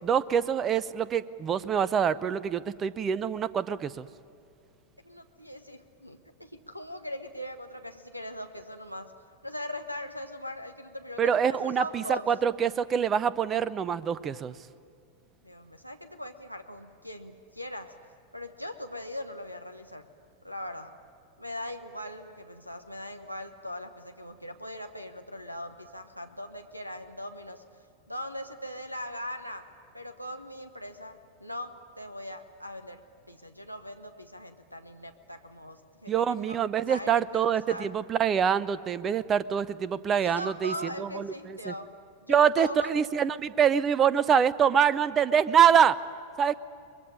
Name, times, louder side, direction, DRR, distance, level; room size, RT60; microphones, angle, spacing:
voice 1, 0.0-4.1 11.2-14.5 36.1-41.7 42.3-46.0 46.4-46.5, right 8 dB, 25° right, 17 dB, 0.8 m, -25 dB
voice 2, 5.0-9.1 9.4-12.3 15.4-17.9 18.3-20.1 20.4-20.9 21.4-27.6 28.1-29.7 29.9-36.6 36.9-37.9 40.2-41.9 42.2-43.0, left 1 dB, 90° left, 5 dB, 1.2 m, -40 dB
23.5 x 21.5 x 9.9 m, 2.4 s
figure-of-eight pair, 90°, 0 cm